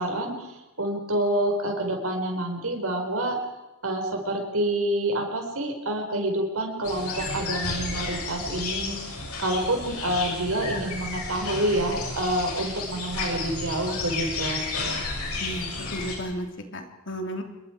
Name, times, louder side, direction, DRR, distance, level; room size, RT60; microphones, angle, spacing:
voice 1, 0.0-3.4 3.8-14.6, right 1 dB, 75° right, 2 dB, 4.9 m, -28 dB
sound 1, 6.8-16.2, left 3 dB, 85° left, 7.3 m, -32 dB
voice 2, 15.4-17.4, equal, 55° left, 4 dB, 3.3 m, -34 dB
27.0 x 22.5 x 4.7 m, 1.0 s
head